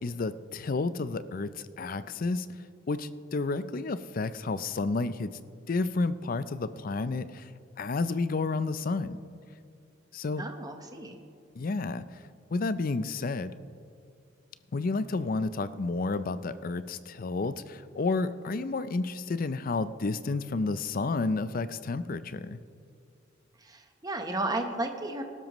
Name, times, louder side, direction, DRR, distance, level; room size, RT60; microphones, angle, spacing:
voice 1, 0.0-2.5 2.9-5.3 5.7-7.5 7.8-9.2 10.1-10.4 11.6-12.0 12.5-13.5 14.7-22.6, left 3 dB, 45° left, 14 dB, 0.4 m, -31 dB
voice 2, 10.4-11.2 23.6-25.2, right 2 dB, 20° right, 5 dB, 1.0 m, -33 dB
19.5 x 12.5 x 3.1 m, 2.4 s
head